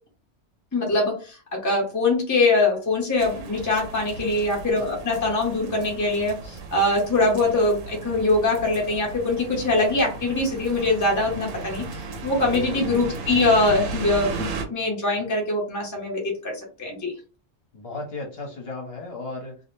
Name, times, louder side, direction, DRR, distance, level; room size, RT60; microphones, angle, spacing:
voice 1, 0.7-17.1, left 2 dB, 20° left, -1 dB, 0.7 m, -23 dB
sound 1, 3.2-14.7, right 3 dB, 90° right, 1.0 m, -36 dB
voice 2, 4.1-4.5 12.5-13.3 17.7-19.6, left 2 dB, 55° left, 0 dB, 1.0 m, -35 dB
2.5 x 2.0 x 3.1 m, 0.34 s
omnidirectional pair, 1.3 m